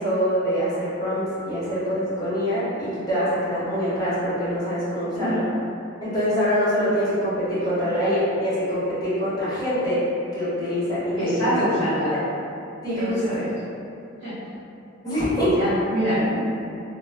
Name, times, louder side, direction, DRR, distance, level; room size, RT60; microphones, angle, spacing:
voice 1, 0.0-5.4 6.0-10.0 10.3-11.5 12.1-12.2 12.8-13.2 15.0-15.6, equal, 20° left, -12 dB, 0.9 m, -24 dB
voice 2, 5.1-5.6 7.8-7.9 11.2-12.2 13.0-13.5 14.2-14.3 15.5-16.4, equal, 70° right, -12 dB, 1.5 m, -25 dB
3.1 x 2.2 x 2.2 m, 2.6 s
head